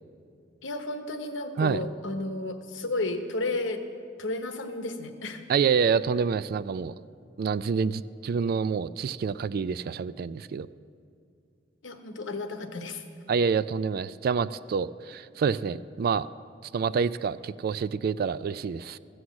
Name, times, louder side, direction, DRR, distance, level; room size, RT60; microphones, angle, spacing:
voice 1, 0.6-3.8 4.2-5.4 11.8-13.0, left 2 dB, 90° left, 7 dB, 1.0 m, -32 dB
voice 2, 5.5-7.0 7.4-10.7 13.3-16.3 16.7-19.0, right 6 dB, 50° right, 16 dB, 0.3 m, -27 dB
14.5 x 7.9 x 7.2 m, 2.4 s
head